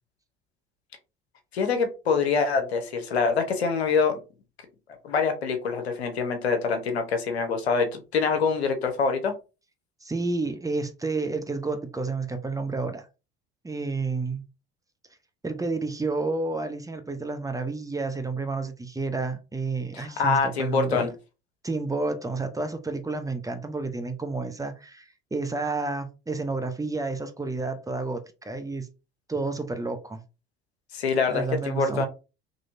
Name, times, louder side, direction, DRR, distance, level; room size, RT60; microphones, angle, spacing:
voice 1, 1.5-4.2 5.0-9.3 19.9-21.1 30.9-32.0, left 5 dB, 90° left, 0.9 m, -25 dB
voice 2, 10.0-13.1 13.6-14.4 15.4-21.1 21.6-28.9 29.3-30.2 31.3-32.0, right 3 dB, 10° right, 0.7 m, -30 dB
4.2 x 3.1 x 2.6 m
hypercardioid pair, 70°, 31 cm